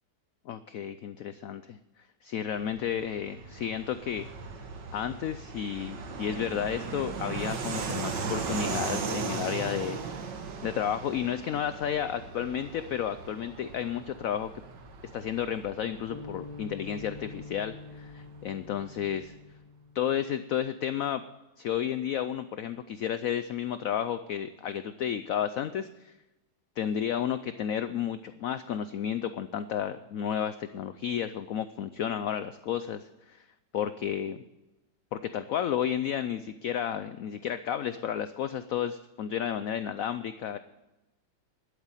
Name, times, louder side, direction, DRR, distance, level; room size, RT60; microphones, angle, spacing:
voice 1, 0.5-1.8 2.2-4.2 4.9-10.0 10.6-14.5 15.1-19.3 19.9-21.2 21.6-26.1 26.8-33.5 33.7-34.4 35.1-40.6, left 9 dB, 70° left, 12 dB, 0.8 m, -32 dB
Fixed-wing aircraft airplane, 2.5-18.7, right 4 dB, 75° right, 2.0 m, -38 dB
sound 1, 16.1-20.4, left 4 dB, 30° left, 0.4 m, -46 dB
11.5 x 8.3 x 8.9 m, 0.99 s
omnidirectional pair, 2.0 m